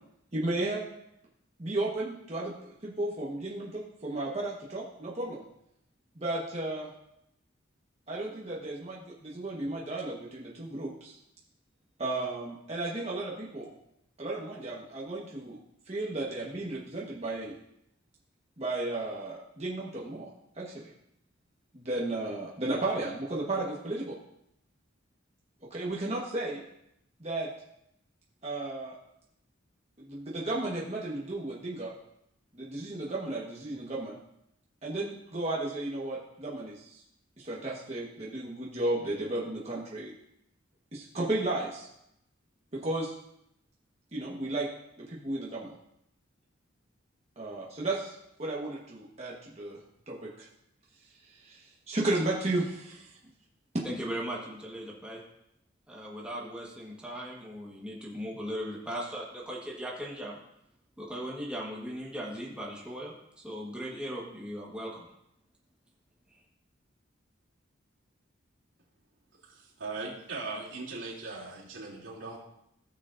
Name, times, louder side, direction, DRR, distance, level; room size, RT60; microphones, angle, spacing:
voice 1, 0.3-0.8 1.6-2.5 2.8-5.4 6.1-6.9 8.1-11.2 12.0-13.7 14.2-15.6 15.9-17.6 18.6-20.3 20.5-20.9 21.7-24.2 25.7-26.6 27.2-27.5 28.4-29.0 30.0-31.9 32.5-34.2 34.8-37.0 37.4-40.1 40.9-41.9 42.7-43.2 44.1-44.7 45.0-45.7 47.4-50.5 51.2-53.1 53.7-53.8, right 2 dB, 35° right, -5 dB, 1.3 m, -34 dB
voice 2, 53.8-55.2 55.9-60.4 61.0-65.0 66.3-66.4, equal, 5° right, -4 dB, 1.4 m, -38 dB
voice 3, 69.4-72.4, right 3 dB, 80° right, -5 dB, 2.9 m, -39 dB
16.0 x 6.6 x 2.6 m, 0.79 s
head